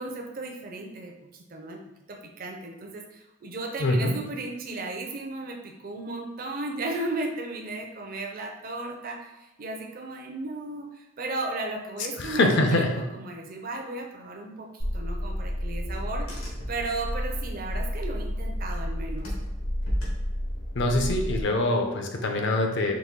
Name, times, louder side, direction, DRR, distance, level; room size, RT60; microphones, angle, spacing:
voice 1, 0.0-1.8 2.1-19.3, right 2 dB, 40° right, 2 dB, 0.4 m, -35 dB
voice 2, 3.8-4.2 12.2-13.0 20.7-23.0, left 2 dB, 55° left, 4 dB, 0.5 m, -24 dB
Car / Engine, 14.8-21.4, equal, 85° left, 1.2 m, -31 dB
4.0 x 2.6 x 3.6 m, 0.99 s
head